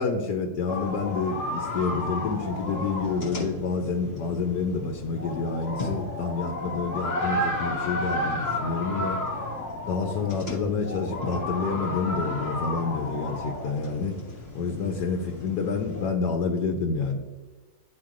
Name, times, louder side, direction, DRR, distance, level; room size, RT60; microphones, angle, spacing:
voice 1, 0.0-9.2 9.9-14.2 14.5-17.2, left 4 dB, 90° left, 3 dB, 1.3 m, -28 dB
sound 1, 0.7-16.1, left 1 dB, 40° left, 2.1 m, -32 dB
11.5 x 4.3 x 2.5 m, 1.3 s
omnidirectional pair, 1.7 m